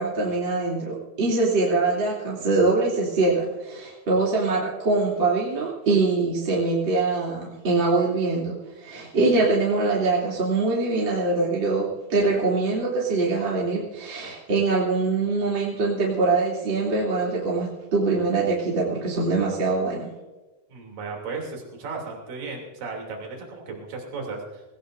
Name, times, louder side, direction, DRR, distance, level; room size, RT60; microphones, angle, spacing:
voice 1, 0.0-20.1, right 3 dB, 35° right, -5 dB, 3.5 m, -23 dB
voice 2, 20.7-24.6, right 4 dB, 80° right, 0 dB, 4.6 m, -35 dB
21.5 x 18.0 x 2.6 m, 1.1 s
omnidirectional pair, 3.7 m